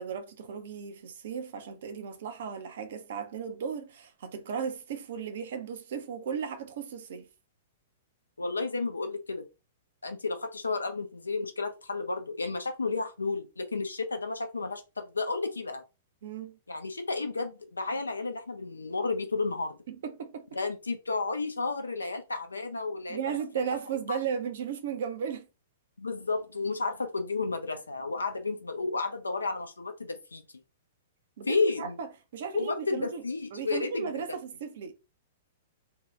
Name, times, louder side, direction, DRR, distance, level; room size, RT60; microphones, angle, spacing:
voice 1, 0.0-7.3 16.2-16.6 19.9-20.5 23.1-25.4 31.4-32.1 32.3-33.2 33.5-34.9, right 7 dB, 55° right, 0.6 m, -35 dB
voice 2, 8.4-9.4 10.0-15.8 16.7-19.8 20.5-23.4 24.1-24.2 26.0-30.4 31.5-31.9 32.5-34.1, left 3 dB, 75° left, 0.6 m, -32 dB
2.8 x 2.3 x 3.1 m
figure-of-eight pair, 105°, 0 cm